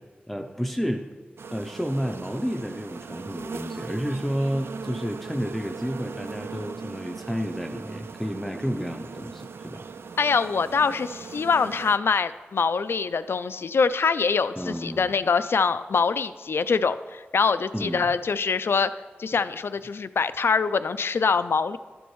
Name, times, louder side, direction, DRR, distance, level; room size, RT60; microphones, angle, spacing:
voice 1, 0.3-1.0 1.5-9.9 14.6-15.1 17.7-18.1, equal, 5° left, 3 dB, 0.6 m, -31 dB
sound 1, 1.4-12.0, right 5 dB, 80° right, 0.3 m, -39 dB
voice 2, 10.2-18.9 19.2-21.8, left 5 dB, 75° left, 13 dB, 0.3 m, -24 dB
13.0 x 10.0 x 3.1 m, 1.3 s
wide cardioid pair, 85°, 4 cm